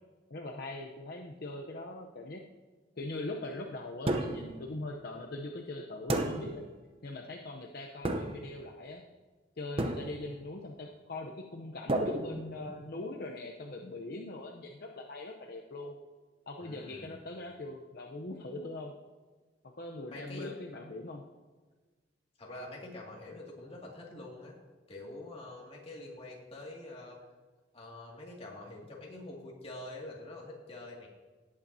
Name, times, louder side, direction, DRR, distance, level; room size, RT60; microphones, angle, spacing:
voice 1, 0.3-2.4 3.0-6.6 7.0-9.0 9.6-16.0 16.5-18.9 19.8-21.2, left 2 dB, 60° left, 1 dB, 0.7 m, -41 dB
sound 1, 4.1-4.6 6.1-6.7 8.0-8.6 9.8-10.4 11.9-12.9, right 1 dB, 35° right, 0.7 m, -32 dB
voice 2, 16.6-17.2 20.1-20.5 22.4-24.6 24.9-27.2 27.7-31.1, left 2 dB, 35° left, -2 dB, 2.2 m, -45 dB
17.5 x 8.7 x 2.8 m, 1.3 s
head